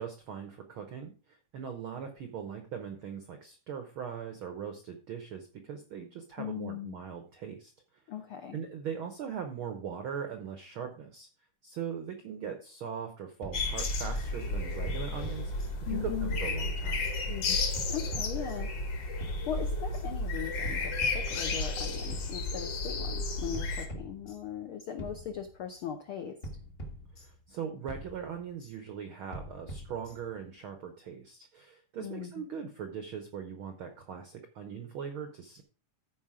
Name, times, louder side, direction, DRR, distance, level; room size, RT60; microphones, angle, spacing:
voice 1, 0.0-7.7 8.5-11.3 11.6-17.1 27.2-35.6, right 7 dB, 75° right, 7 dB, 1.2 m, -40 dB
voice 2, 6.4-6.9 8.1-8.6 15.9-16.3 17.3-17.6 17.9-18.7 19.1-26.4 32.0-32.3, left 9 dB, 80° left, 6 dB, 1.2 m, -39 dB
sound 1, 13.4-14.3 14.9-16.0 16.3-17.2 17.7-18.8 19.2-20.1 20.6-21.8 22.1-23.0 23.5-24.7 25.0-25.8 26.4-27.6 27.9-28.7 29.3-30.5, right 1 dB, 35° left, 1.0 m, -45 dB
sound 2, 13.5-23.9, left 3 dB, 55° left, 2.3 m, -32 dB
13.0 x 4.9 x 4.8 m, 0.38 s
omnidirectional pair, 3.6 m